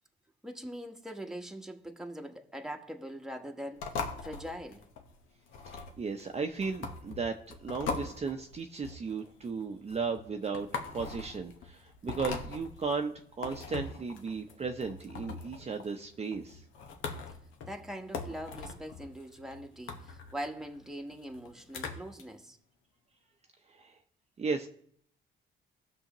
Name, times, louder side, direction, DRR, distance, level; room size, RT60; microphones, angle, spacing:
voice 1, 0.4-4.9 17.7-22.6, equal, ahead, 1.1 m, -42 dB
sound 1, 3.8-22.2, left 4 dB, 85° left, 1.2 m, -41 dB
voice 2, 5.7-7.4 7.6-16.6 23.7-24.0 24.4-24.7, right 5 dB, 30° right, 0.7 m, -35 dB
17.0 x 6.3 x 3.0 m
cardioid pair, 90°, 20 cm